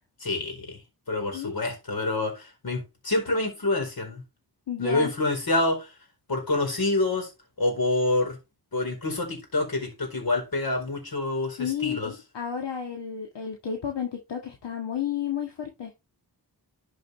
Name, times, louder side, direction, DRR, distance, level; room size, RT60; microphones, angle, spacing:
voice 1, 0.2-0.8 1.1-4.2 4.8-5.9 6.3-7.3 7.6-8.4 8.7-12.1, left 2 dB, 55° left, 4.7 m, -27 dB
voice 2, 4.7-5.1 11.6-15.9, left 8 dB, 80° left, 1.8 m, -32 dB
11.5 x 5.5 x 3.4 m
cardioid pair, 60°, 41 cm